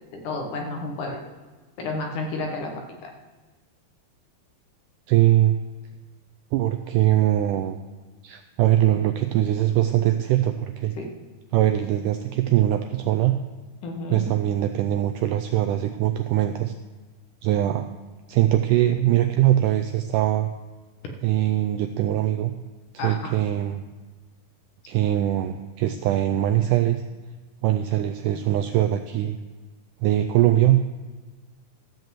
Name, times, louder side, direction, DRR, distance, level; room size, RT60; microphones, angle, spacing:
voice 1, 0.1-1.2 1.8-2.7 3.0-3.1 11.0-11.1 13.8-14.3 23.0-23.3, left 2 dB, 65° left, 2 dB, 2.7 m, -31 dB
voice 2, 5.1-5.6 6.5-7.8 8.2-10.9 11.5-13.3 14.1-16.7 17.4-17.9 18.3-20.5 21.2-22.5 23.0-23.8 24.9-27.0 27.6-29.4 30.0-30.9, right 13 dB, 90° right, 8 dB, 1.8 m, -22 dB
13.5 x 5.3 x 7.5 m, 1.3 s
omnidirectional pair, 4.2 m